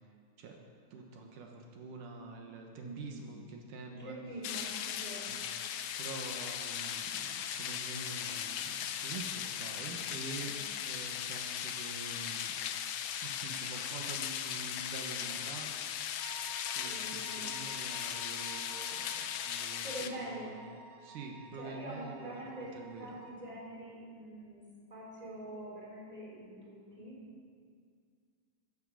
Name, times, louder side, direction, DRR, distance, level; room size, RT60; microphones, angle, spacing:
voice 1, 0.9-4.2 5.3-10.5 10.9-12.6 13.2-16.3 16.7-20.6 21.0-23.2, right 3 dB, 80° right, 1 dB, 2.7 m, -47 dB
voice 2, 2.8-3.3 3.9-5.3 10.4-10.6 16.8-17.5 19.8-20.6 21.6-22.7 23.0-24.6 24.9-27.2, right 1 dB, 10° right, -5 dB, 3.7 m, -45 dB
sound 1, 4.4-20.1, left 9 dB, 85° left, 1.4 m, -38 dB
sound 2, 16.2-23.3, right 4 dB, 65° right, 1.1 m, -53 dB
12.5 x 10.0 x 7.5 m, 2.1 s
omnidirectional pair, 3.7 m